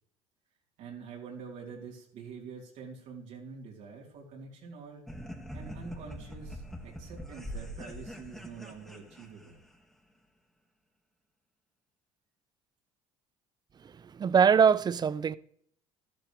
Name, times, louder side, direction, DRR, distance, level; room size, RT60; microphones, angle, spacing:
voice 1, 0.8-5.0 5.5-9.5, right 5 dB, 70° right, 3.8 m, -46 dB
sound 1, 5.1-9.8, equal, 5° left, 2.1 m, -43 dB
voice 2, 13.8-15.3, right 7 dB, 35° right, 0.6 m, -23 dB
12.0 x 12.0 x 3.4 m
supercardioid pair, 80°, 13 cm